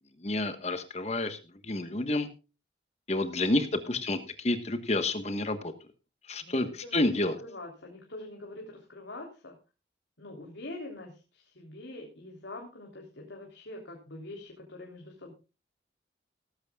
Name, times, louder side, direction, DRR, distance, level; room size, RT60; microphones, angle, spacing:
voice 1, 0.2-2.3 3.1-5.7 6.3-7.4, left 2 dB, 35° left, 9 dB, 1.3 m, -29 dB
voice 2, 6.4-9.5 10.2-15.3, left 2 dB, 85° left, 1 dB, 3.4 m, -44 dB
18.0 x 14.5 x 2.3 m, 0.31 s
head